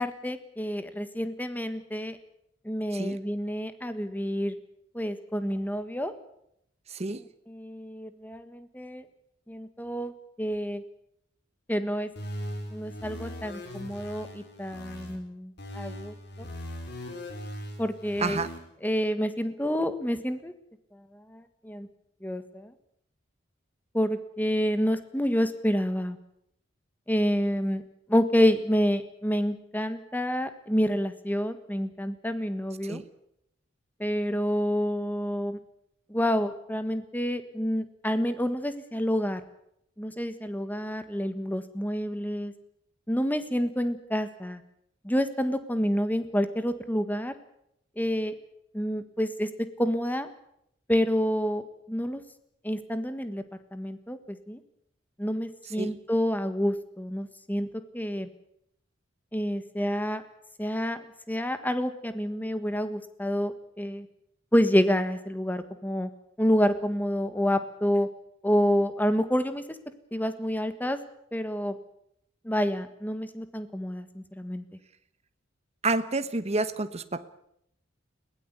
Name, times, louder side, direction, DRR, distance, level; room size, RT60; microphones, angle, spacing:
voice 1, 0.0-2.2 2.6-4.6 4.9-6.1 7.1-9.0 9.5-10.1 10.4-10.8 11.7-12.1 12.7-16.5 17.8-18.4 18.8-20.5 21.1-21.9 22.2-22.7 23.9-26.2 27.1-27.8 28.1-33.0 34.0-35.6 36.1-39.4 40.0-42.5 43.1-44.6 45.0-47.3 48.0-48.3 48.7-49.5 49.8-50.3 50.9-51.6 51.9-52.2 52.6-53.4 53.7-54.6 55.2-57.7 57.9-58.3 59.3-60.2 60.6-61.0 61.3-64.1 64.5-66.1 66.4-68.1 68.4-69.6 70.1-71.0 71.3-71.8 72.4-74.6, equal, 10° left, 10 dB, 1.6 m, -28 dB
sound 1, 12.2-15.2 15.6-18.6, equal, 60° left, 4.5 m, -39 dB
voice 2, 18.2-18.5 32.8-33.0 55.8-55.9 75.8-77.3, right 3 dB, 35° right, 11 dB, 1.2 m, -29 dB
21.5 x 18.0 x 8.3 m, 0.75 s
head